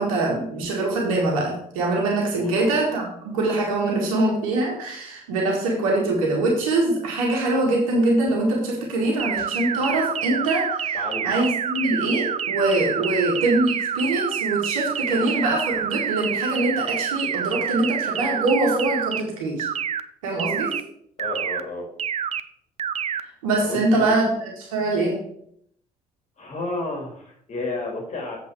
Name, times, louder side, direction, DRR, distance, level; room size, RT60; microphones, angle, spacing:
voice 1, 0.0-11.0 11.2-19.7 20.2-20.8 23.4-25.2, right 2 dB, 75° right, -1 dB, 1.8 m, -23 dB
sound 1, 9.2-19.2 19.6-20.0 20.4-20.8 21.2-21.6 22.0-22.4 22.8-23.2, right 8 dB, 35° right, 0.5 m, -27 dB
voice 2, 10.9-11.3 12.9-13.2 21.2-21.8 23.6-24.1 26.4-28.4, left 2 dB, 40° left, 0 dB, 2.8 m, -31 dB
8.1 x 4.4 x 7.1 m, 0.69 s
figure-of-eight pair, 50°, 18 cm